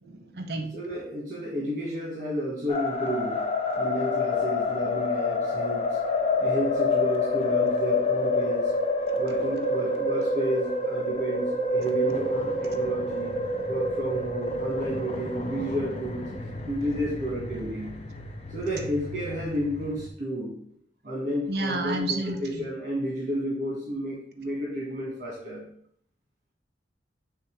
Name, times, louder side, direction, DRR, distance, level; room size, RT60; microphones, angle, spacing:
voice 1, 0.0-0.7 21.5-22.7, right 2 dB, 65° right, 5 dB, 0.8 m, -31 dB
voice 2, 0.7-3.4 3.7-6.0 6.4-8.7 9.1-13.3 13.7-16.2 16.6-17.9 18.5-20.6 21.0-25.6, right 1 dB, 45° right, -3 dB, 1.7 m, -31 dB
sound 1, 2.7-20.1, left 2 dB, 35° left, 0.7 m, -28 dB
7.6 x 3.5 x 4.6 m, 0.64 s
head